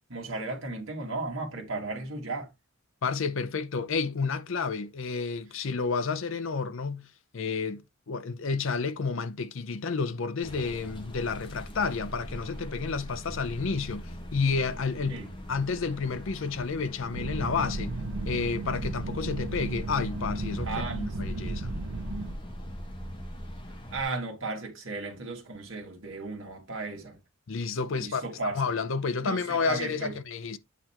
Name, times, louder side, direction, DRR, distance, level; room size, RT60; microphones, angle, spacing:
voice 1, 0.1-2.5 15.1-15.3 20.6-21.4 23.9-27.2 28.0-28.6 29.2-30.1, right 3 dB, 60° right, 1.9 m, -35 dB
voice 2, 3.0-7.1 7.3-18.0 18.3-21.7 27.5-30.6, left 4 dB, 60° left, 0.6 m, -30 dB
sound 1, 10.4-24.0, equal, 20° left, 1.2 m, -42 dB
sound 2, 17.1-22.3, right 2 dB, 80° right, 0.7 m, -34 dB
8.4 x 2.9 x 4.3 m
head